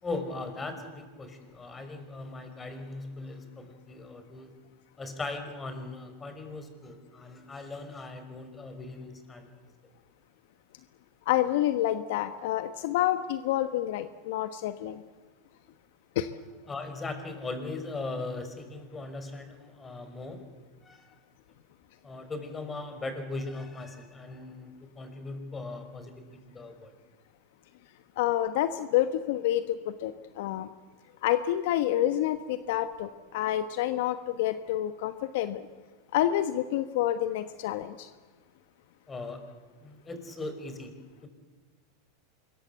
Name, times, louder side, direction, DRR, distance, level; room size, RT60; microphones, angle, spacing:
voice 1, 0.0-4.5 5.0-9.6 16.7-20.4 20.8-21.1 22.0-26.9 39.1-39.4 39.8-40.9 41.2-41.3, left 3 dB, 20° left, 8 dB, 5.3 m, -39 dB
voice 2, 11.3-15.0 16.1-16.3 28.2-30.7 31.2-35.7 36.1-38.1, left 12 dB, 65° left, 11 dB, 1.2 m, -28 dB
25.5 x 22.5 x 8.2 m, 1.3 s
hypercardioid pair, 100°, 0 cm